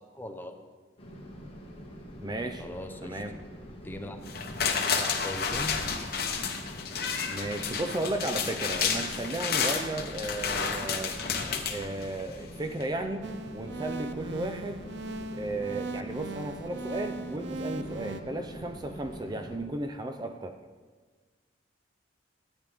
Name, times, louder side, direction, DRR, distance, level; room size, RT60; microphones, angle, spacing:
voice 1, 0.1-0.5 2.6-3.2 3.8-4.2 4.8-5.8, left 1 dB, 10° left, 5 dB, 0.8 m, -40 dB
sound 1, 1.0-19.6, equal, 30° left, 1.6 m, -45 dB
voice 2, 2.2-2.7 3.0-3.3 7.3-11.1 11.7-13.3 13.5-14.8 15.4-20.6, right 2 dB, 25° right, 6 dB, 0.5 m, -34 dB
sound 2, 4.3-12.4 12.8-12.9, left 6 dB, 55° left, 1.0 m, -31 dB
sound 3, 13.2-18.2, right 3 dB, 70° right, 0.6 m, -39 dB
13.5 x 9.1 x 3.5 m, 1.4 s
head